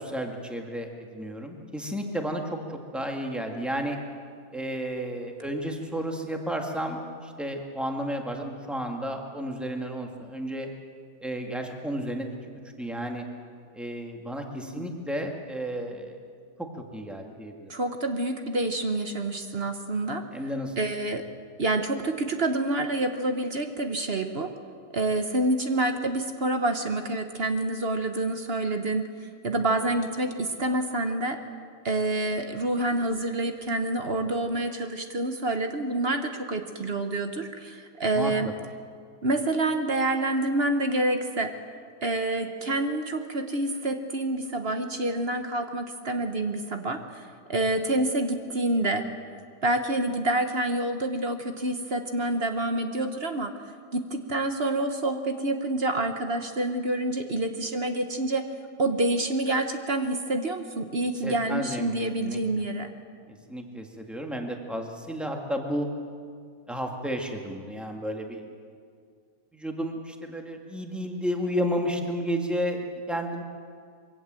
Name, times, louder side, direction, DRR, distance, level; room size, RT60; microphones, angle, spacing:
voice 1, 0.0-4.0 4.5-10.7 11.2-12.4 12.8-13.2 13.7-16.2 16.6-17.7 20.3-20.7 38.1-38.5 61.2-61.9 62.2-62.4 63.3-65.9 66.7-68.4 69.5-73.4, equal, ahead, 2 dB, 1.8 m, -32 dB
voice 2, 17.7-20.2 20.8-21.3 21.6-24.5 24.9-29.1 29.4-31.4 31.8-38.5 39.2-41.5 42.0-47.2 47.5-49.0 49.6-53.5 53.9-58.4 58.8-62.9, right 2 dB, 40° right, 6 dB, 1.2 m, -27 dB
23.0 x 16.5 x 7.6 m, 2.2 s
omnidirectional pair, 1.8 m